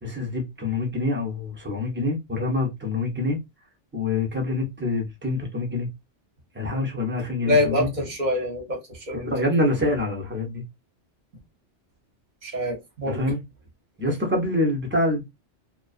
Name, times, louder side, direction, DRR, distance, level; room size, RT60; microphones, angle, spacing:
voice 1, 0.0-3.4 3.9-5.9 6.5-7.9 9.1-10.6 13.1-13.4 14.0-15.2, left 2 dB, 15° right, 0.4 m, -26 dB
voice 2, 7.4-9.3 12.4-13.2, left 2 dB, 45° right, 0.8 m, -25 dB
2.5 x 2.2 x 2.4 m
omnidirectional pair, 1.3 m